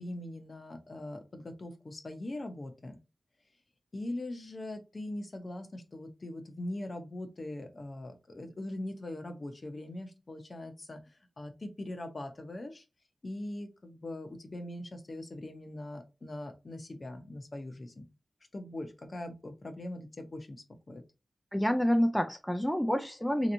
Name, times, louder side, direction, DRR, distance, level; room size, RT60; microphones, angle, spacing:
voice 1, 0.0-3.0 3.9-12.8 13.2-18.0 18.5-21.0, left 1 dB, 45° left, 0.8 m, -41 dB
voice 2, 21.5-23.5, equal, 5° left, 0.4 m, -28 dB
3.2 x 2.9 x 2.6 m
wide cardioid pair, 85°, 0 cm